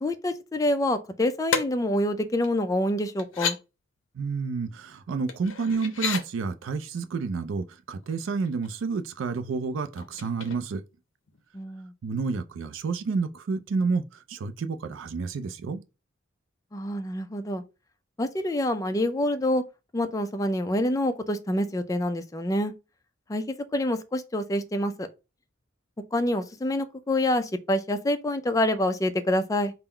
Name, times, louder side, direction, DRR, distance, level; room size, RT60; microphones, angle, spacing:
voice 1, 0.0-3.6 11.5-11.9 16.7-17.6 18.2-19.6 19.9-22.7 23.3-25.1 26.1-29.7, left 1 dB, 15° left, 0.4 m, -26 dB
sound 1, 1.5-1.6 2.4-2.5 3.2-3.6 5.3-6.2 8.0-8.1 8.5-8.9 10.0-10.9 11.3-11.4, left 5 dB, 65° left, 0.6 m, -31 dB
voice 2, 4.2-10.8 12.0-14.0 14.3-15.8, right 4 dB, 70° right, 0.4 m, -30 dB
3.7 x 2.0 x 4.3 m
head